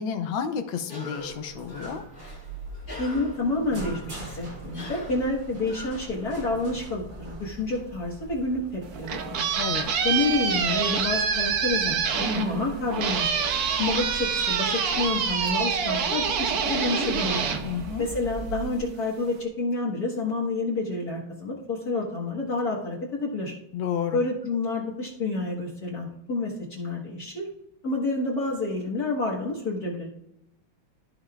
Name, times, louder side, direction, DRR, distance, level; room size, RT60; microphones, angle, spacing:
voice 1, 0.0-2.0 9.6-9.9 17.6-18.0 23.7-24.2, left 7 dB, 75° left, 8 dB, 1.5 m, -31 dB
Cough, 0.8-6.6, left 2 dB, 25° left, 2.0 m, -43 dB
sound 1, 1.2-18.8, right 3 dB, 40° right, 2.3 m, -41 dB
voice 2, 3.0-9.4 10.0-13.3 13.8-17.4 18.0-23.5 24.1-27.5 27.8-30.1, left 2 dB, 50° left, -4 dB, 1.9 m, -29 dB
sound 2, 8.8-18.5, right 6 dB, 60° right, 1.1 m, -26 dB
14.5 x 5.3 x 2.4 m, 0.84 s
omnidirectional pair, 2.3 m